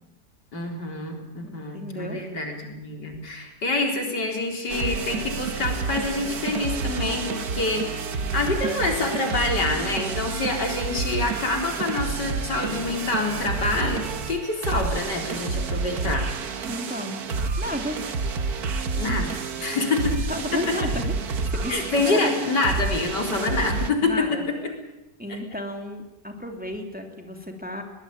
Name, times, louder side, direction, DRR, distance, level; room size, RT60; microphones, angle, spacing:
voice 1, 0.5-16.3 18.9-20.3 20.5-20.6 21.7-24.3 25.3-25.4, left 3 dB, 85° left, 2 dB, 4.7 m, -27 dB
voice 2, 1.4-2.2 16.7-17.2 17.6-18.0 18.8-19.2 20.3-21.1 21.5-22.5 24.0-24.5 25.2-27.8, left 1 dB, 5° right, 3 dB, 2.9 m, -33 dB
sound 1, 4.7-23.9, right 4 dB, 65° right, 1.8 m, -29 dB
22.5 x 20.5 x 8.9 m, 0.93 s
omnidirectional pair, 1.8 m